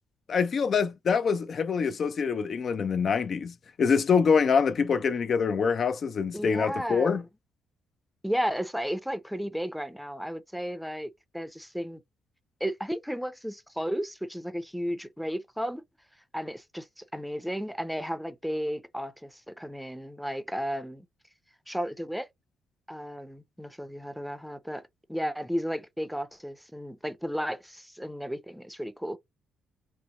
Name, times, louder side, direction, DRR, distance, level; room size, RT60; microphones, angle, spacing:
voice 1, 0.3-7.2, left 6 dB, 50° left, 0.4 m, -25 dB
voice 2, 6.3-7.2 8.2-12.0 12.6-15.8 16.3-21.1 21.7-22.3 22.9-29.2, equal, ahead, 0.6 m, -34 dB
4.4 x 2.0 x 2.9 m
cardioid pair, 90°, 0 cm